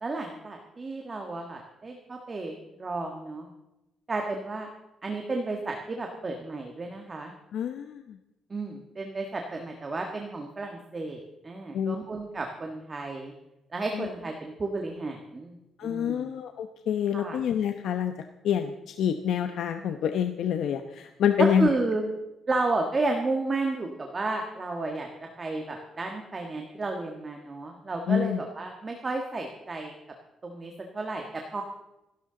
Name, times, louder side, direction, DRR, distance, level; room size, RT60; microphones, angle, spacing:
voice 1, 0.0-3.5 4.1-4.7 5.0-7.3 8.5-13.3 13.7-15.6 15.8-16.3 17.1-17.4 21.4-22.1 22.5-25.1 25.4-29.9 30.4-31.6, right 3 dB, 25° right, 2 dB, 1.5 m, -32 dB
voice 2, 7.5-8.2 11.7-12.0 13.9-14.1 15.8-18.1 18.4-21.7 28.1-28.4, left 8 dB, 70° left, 6 dB, 0.9 m, -27 dB
26.5 x 12.5 x 3.9 m, 0.93 s
cardioid pair, 160°, 0 cm